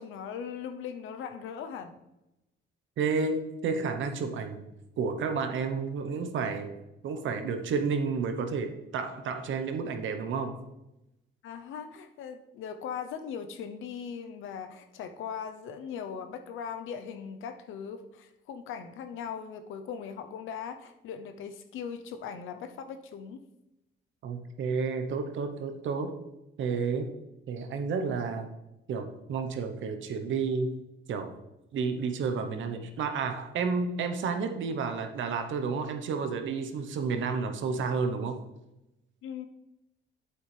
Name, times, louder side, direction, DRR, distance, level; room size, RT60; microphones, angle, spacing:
voice 1, 0.0-2.0 11.4-23.4 39.2-39.5, left 7 dB, 85° left, 8 dB, 0.8 m, -39 dB
voice 2, 3.0-4.7 5.0-6.7 7.0-10.6 24.2-26.1 26.6-27.1 27.5-28.5 28.9-31.3 31.7-38.4, right 5 dB, 75° right, 7 dB, 1.1 m, -31 dB
8.6 x 7.9 x 3.4 m, 0.94 s
cardioid pair, 90°, 20 cm